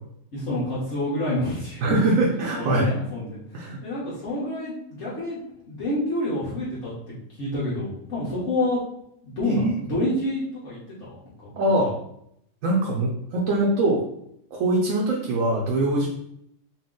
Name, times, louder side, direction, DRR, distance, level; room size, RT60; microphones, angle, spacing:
voice 1, 0.3-1.9 2.6-3.4 3.8-5.4 5.7-8.8 9.2-11.2, left 1 dB, 65° left, -8 dB, 1.4 m, -28 dB
voice 2, 1.8-2.9 3.5-3.8 9.4-9.7 11.6-12.0 12.6-14.0 14.5-16.1, right 2 dB, 80° right, -3 dB, 1.1 m, -22 dB
4.2 x 2.5 x 3.7 m, 0.75 s
omnidirectional pair, 1.4 m